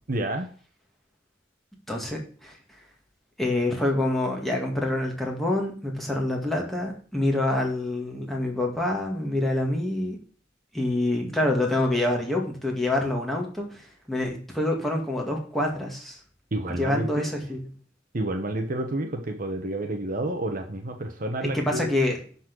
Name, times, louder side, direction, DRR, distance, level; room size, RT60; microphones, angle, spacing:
voice 1, 0.1-0.5 16.5-17.3 18.1-21.9, right 1 dB, 50° right, 5 dB, 1.1 m, -29 dB
voice 2, 1.9-2.5 3.4-10.2 10.7-16.2 16.8-17.6 21.5-22.2, left 1 dB, ahead, -1 dB, 2.2 m, -26 dB
11.0 x 4.3 x 6.2 m, 0.42 s
head